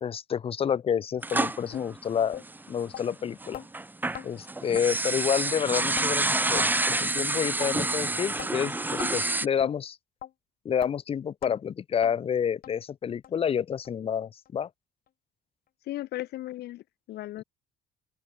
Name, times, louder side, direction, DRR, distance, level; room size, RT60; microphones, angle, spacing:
voice 1, 0.0-2.4 2.7-3.6 4.2-10.0 10.6-14.7, left 8 dB, 35° left, 0.6 m, -29 dB
sound 1, 1.2-3.0 3.4-9.5, right 2 dB, 10° right, 1.2 m, -28 dB
sound 2, 1.7-1.9 2.3-2.5 2.9-3.0 3.5-3.7 4.1-4.3 4.7-4.9 5.4-5.5 6.0-6.1 6.6-6.7 7.2-7.3 7.8-7.9 8.4-8.5 9.0-9.2 9.6-9.7 10.2-10.3 10.8-10.9 11.4-11.5 12.0-12.1 12.6-12.7 13.2-13.3 13.8-13.9 14.4-14.5, left 11 dB, 60° left, 3.5 m, -40 dB
voice 2, 15.9-17.4, left 15 dB, 75° left, 2.1 m, -36 dB
open air
cardioid pair, 110°, 17 cm